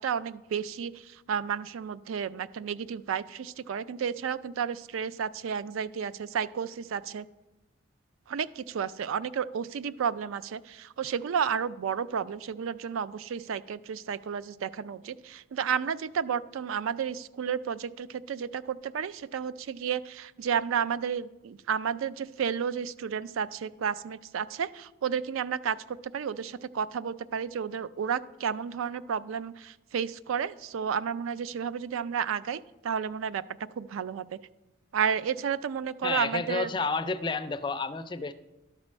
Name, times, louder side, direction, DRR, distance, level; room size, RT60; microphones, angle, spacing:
voice 1, 0.0-7.2 8.3-33.4 33.7-34.4 34.9-36.7, right 7 dB, 85° right, 16 dB, 0.4 m, -32 dB
voice 2, 36.0-38.3, left 4 dB, 25° left, 11 dB, 0.3 m, -30 dB
12.5 x 4.2 x 6.1 m, 1.0 s
head